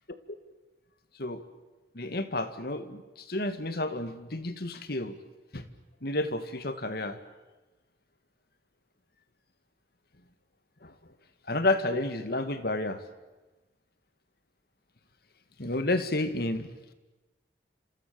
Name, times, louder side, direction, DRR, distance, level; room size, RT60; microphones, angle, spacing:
voice 1, 1.9-5.2 5.5-5.6 6.0-7.2 10.8-10.9 11.5-13.0 15.6-16.7, left 2 dB, 55° left, 10 dB, 2.1 m, -30 dB
29.0 x 27.0 x 7.0 m, 1.1 s
head